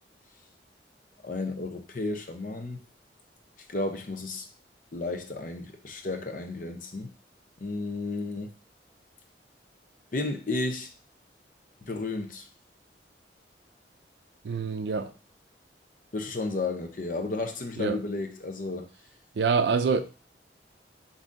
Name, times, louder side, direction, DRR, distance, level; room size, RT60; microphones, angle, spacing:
voice 1, 1.2-2.8 3.7-4.5 4.9-7.1 7.6-8.5 10.1-10.9 11.9-12.4 16.1-18.9, left 2 dB, 50° left, 0.7 m, -32 dB
voice 2, 14.4-15.1 17.8-18.0 19.4-20.0, right 5 dB, 75° right, 0.4 m, -25 dB
7.1 x 2.7 x 2.5 m
head